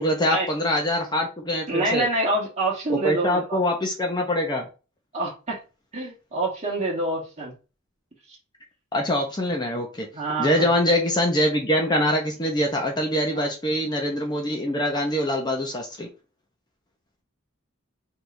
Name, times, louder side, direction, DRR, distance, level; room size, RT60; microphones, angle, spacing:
voice 1, 0.0-2.1 2.9-4.7 8.9-10.1 10.4-16.1, left 1 dB, 20° left, 1 dB, 0.7 m, -24 dB
voice 2, 1.7-3.6 5.1-5.6 5.9-7.5 10.1-10.7 13.3-13.5, right 2 dB, 35° right, -3 dB, 1.8 m, -26 dB
4.6 x 3.5 x 2.6 m, 0.32 s
head